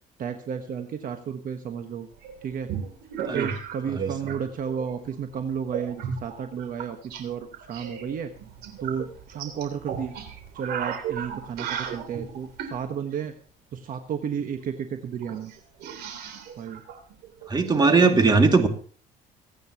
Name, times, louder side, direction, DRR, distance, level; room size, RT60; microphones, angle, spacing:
voice 1, 0.2-2.1 2.4-2.7 3.3-8.3 8.8-10.1 10.5-13.3 13.7-15.5 16.6-16.8 17.8-18.1, right 7 dB, 55° right, 6 dB, 1.3 m, -32 dB
sound 1, 2.2-4.4 4.7-5.1 5.7-7.2 7.5-12.8 14.5-14.6 14.8-14.9 15.2-17.8, right 7 dB, 75° right, 3.2 m, -35 dB
voice 2, 17.5-18.7, right 4 dB, 25° right, 5 dB, 2.3 m, -19 dB
26.0 x 9.2 x 3.0 m, 0.42 s
cardioid pair, 110°, 17 cm